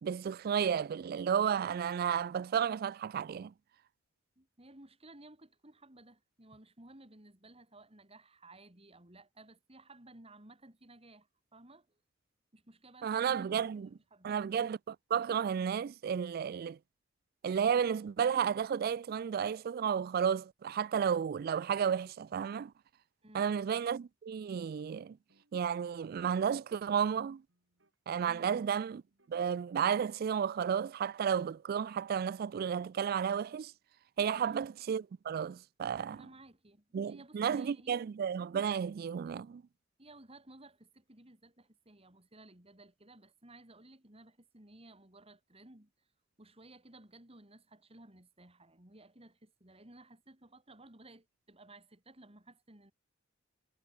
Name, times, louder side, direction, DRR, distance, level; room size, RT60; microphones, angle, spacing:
voice 1, 0.0-3.5 13.0-13.9 14.2-16.8 17.4-22.7 23.3-25.2 25.5-27.4 28.1-29.0 29.3-33.7 34.2-36.3 36.9-39.6, right 7 dB, 50° right, 0.3 m, -32 dB
voice 2, 4.4-12.0 12.5-14.6 23.2-23.6 28.3-28.5 34.3-34.7 36.1-38.1 40.0-45.9 46.4-52.9, right 2 dB, 30° right, 3.9 m, -57 dB
sound 1, 24.7-29.4 29.7-30.9, right 1 dB, 65° right, 5.4 m, -74 dB
head